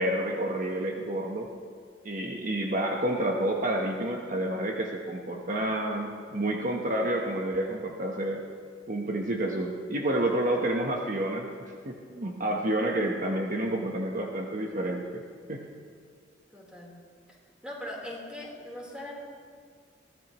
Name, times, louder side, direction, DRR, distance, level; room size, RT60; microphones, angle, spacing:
voice 1, 0.0-1.5 2.0-8.4 8.9-15.2 15.5-15.6, right 1 dB, 45° right, 0 dB, 1.1 m, -29 dB
voice 2, 16.5-16.9 17.6-19.1, left 1 dB, 5° right, -3 dB, 3.8 m, -40 dB
22.5 x 16.0 x 3.1 m, 2.1 s
head